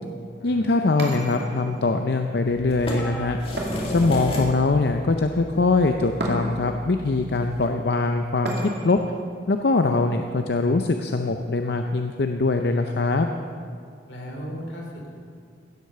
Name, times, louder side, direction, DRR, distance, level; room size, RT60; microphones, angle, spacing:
voice 1, 0.4-3.4 3.9-8.5 8.8-9.0 9.5-13.3, left 3 dB, 60° left, 5 dB, 0.6 m, -22 dB
sound 1, 1.0-1.9 3.6-4.5 6.2-6.8 8.4-9.1, right 1 dB, 60° right, 2.4 m, -32 dB
sound 2, 2.5-7.7, left 1 dB, 30° left, 2.0 m, -34 dB
sound 3, 3.0-4.8 5.5-5.8 7.1-7.2, left 1 dB, 5° left, 1.3 m, -43 dB
voice 2, 14.1-15.2, equal, 80° left, 0 dB, 2.9 m, -36 dB
16.0 x 8.1 x 6.8 m, 2.3 s
head